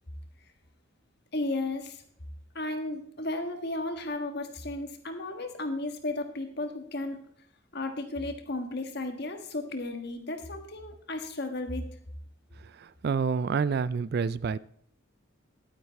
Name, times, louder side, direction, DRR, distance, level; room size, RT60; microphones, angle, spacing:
voice 1, 1.3-2.0 2.5-7.2 7.7-12.0, left 2 dB, 50° left, 1.5 m, -34 dB
voice 2, 13.0-14.6, right 5 dB, 50° right, 0.3 m, -27 dB
11.5 x 9.6 x 4.1 m
head